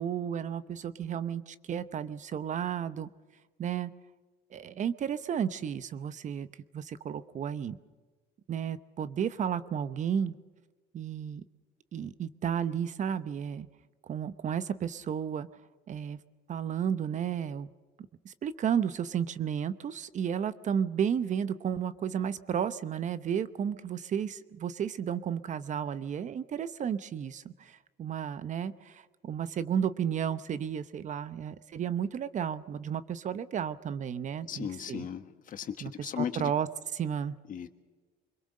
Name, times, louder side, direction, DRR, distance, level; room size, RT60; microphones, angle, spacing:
voice 1, 0.0-3.1 3.6-3.9 4.5-6.5 6.7-7.8 8.5-10.3 10.9-11.4 11.9-13.7 14.0-15.5 15.9-16.2 16.5-17.7 18.2-35.0 35.8-35.9 36.2-36.7 36.9-37.3, right 8 dB, 45° right, 13 dB, 0.8 m, -33 dB
voice 2, 34.4-36.5 37.5-37.7, left 9 dB, 50° left, 8 dB, 1.5 m, -36 dB
24.5 x 22.0 x 6.5 m, 1.3 s
cardioid pair, 110°, 17 cm